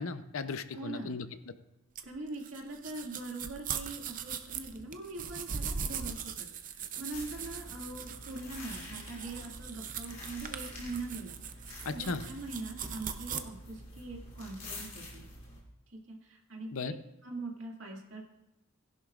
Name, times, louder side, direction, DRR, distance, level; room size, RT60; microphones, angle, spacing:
voice 1, 0.0-1.5 11.8-12.3 16.7-16.9, left 4 dB, 70° left, 11 dB, 0.6 m, -36 dB
voice 2, 0.7-1.1 2.0-11.6 11.9-15.2 15.9-17.0 17.2-18.2, right 2 dB, 60° right, 0 dB, 2.1 m, -42 dB
sound 1, 2.0-13.4, right 7 dB, 35° right, 0.6 m, -40 dB
sound 2, 7.1-15.6, left 1 dB, 35° left, 3.1 m, -47 dB
16.0 x 11.0 x 2.5 m, 0.93 s
head